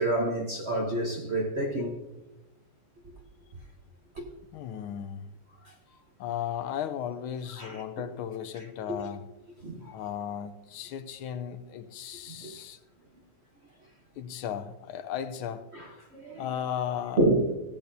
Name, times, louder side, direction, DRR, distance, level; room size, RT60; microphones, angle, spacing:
voice 1, 0.0-2.0 4.1-4.2 5.6-5.7 7.6-7.8 8.9-9.0 9.6-9.9 12.3-12.5 15.7-16.4 17.2-17.5, right 1 dB, 45° right, 0.9 m, -28 dB
voice 2, 4.5-5.4 6.2-9.2 9.9-12.8 14.2-15.7 16.4-17.2, left 9 dB, 75° left, 1.4 m, -35 dB
16.0 x 8.5 x 2.7 m
omnidirectional pair, 2.4 m